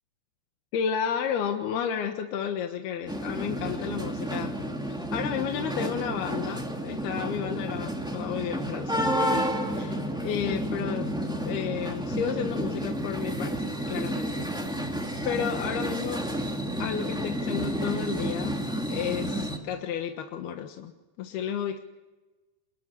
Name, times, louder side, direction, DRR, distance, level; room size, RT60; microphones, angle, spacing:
voice 1, 0.7-4.6 5.1-11.1 11.4-14.5 15.2-16.3 16.8-18.6 18.9-20.9 21.2-21.8, left 8 dB, 70° left, 5 dB, 3.2 m, -32 dB
sound 1, 3.1-19.6, equal, ahead, 1.6 m, -31 dB
28.0 x 22.0 x 9.8 m, 1.2 s
omnidirectional pair, 4.9 m